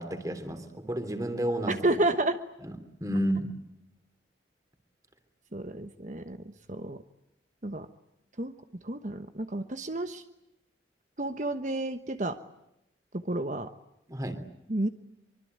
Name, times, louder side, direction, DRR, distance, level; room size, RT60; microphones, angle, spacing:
voice 1, 0.0-1.8 2.6-2.7 3.0-3.5 14.1-14.4, right 1 dB, 20° right, 8 dB, 3.2 m, -31 dB
voice 2, 1.7-2.4 5.5-7.0 7.6-7.9 8.4-8.5 8.8-10.2 11.2-12.4 13.1-13.7 14.7-14.9, right 2 dB, 40° right, 9 dB, 1.2 m, -31 dB
25.0 x 24.5 x 9.5 m, 0.86 s
head